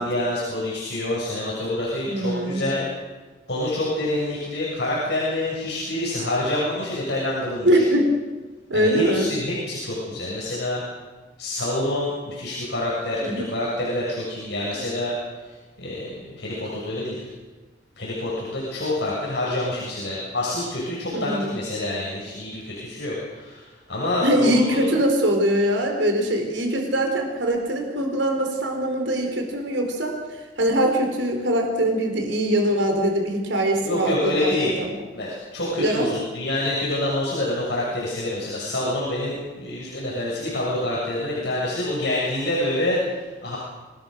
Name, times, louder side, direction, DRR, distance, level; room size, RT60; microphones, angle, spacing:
voice 1, 0.0-2.9 3.5-7.8 8.7-10.8 11.4-15.2 15.4-17.3 18.0-24.9 33.8-34.8 35.1-43.6, left 1 dB, 65° left, -5 dB, 6.9 m, -27 dB
voice 2, 2.0-2.6 7.6-8.1 8.7-9.3 13.2-13.5 14.7-14.8 21.1-21.5 24.2-30.1 30.6-34.5 35.8-36.1, right 1 dB, 80° right, 3 dB, 4.7 m, -22 dB
26.5 x 19.5 x 6.6 m, 1.3 s
head